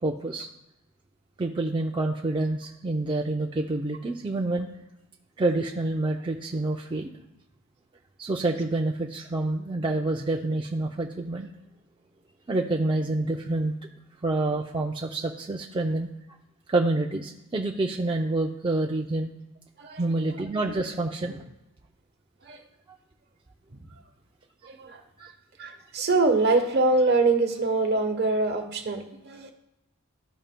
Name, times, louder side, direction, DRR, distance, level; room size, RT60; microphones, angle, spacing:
voice 1, 0.0-0.5 1.4-4.7 5.4-7.1 8.2-11.5 12.5-13.7 14.2-16.1 16.7-19.3 20.0-21.5 25.2-25.3, right 2 dB, 20° right, 0 dB, 0.4 m, -27 dB
voice 2, 24.6-25.0 25.6-29.5, right 3 dB, 50° right, 5 dB, 1.0 m, -24 dB
13.5 x 5.5 x 2.2 m, 0.89 s
head